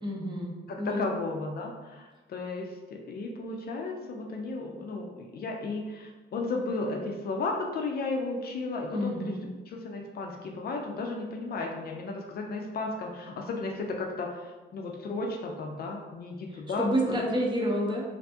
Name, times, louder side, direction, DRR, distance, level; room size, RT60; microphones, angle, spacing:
voice 1, 0.0-0.5 0.8-1.0 8.9-9.4 16.8-18.0, equal, 25° right, -3 dB, 0.7 m, -28 dB
voice 2, 0.7-17.0, left 3 dB, 50° left, 1 dB, 0.4 m, -34 dB
2.5 x 2.2 x 2.6 m, 1.2 s
cardioid pair, 90°, 20 cm